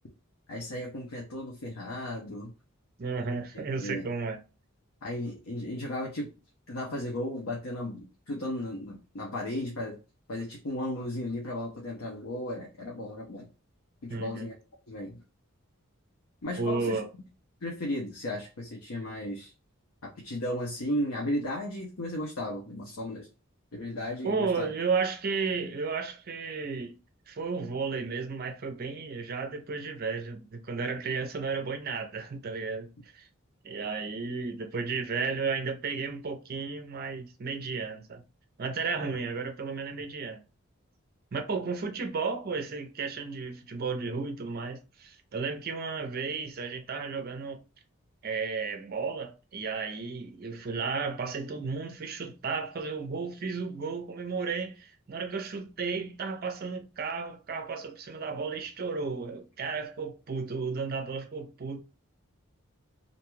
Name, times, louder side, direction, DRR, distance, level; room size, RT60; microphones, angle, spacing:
voice 1, 0.5-2.5 3.5-4.1 5.0-6.3 6.7-10.0 10.3-13.5 14.0-14.5 14.9-15.2 16.4-17.0 17.6-19.5 20.0-23.3 23.7-24.7, left 1 dB, 80° left, 0.7 m, -35 dB
voice 2, 3.0-4.4 14.1-14.5 16.6-17.1 24.2-27.0 27.3-32.9 33.1-33.3 33.6-38.2 38.6-40.4 41.3-47.6 48.2-61.8, right 4 dB, 45° right, 0.5 m, -33 dB
2.6 x 2.2 x 3.0 m
head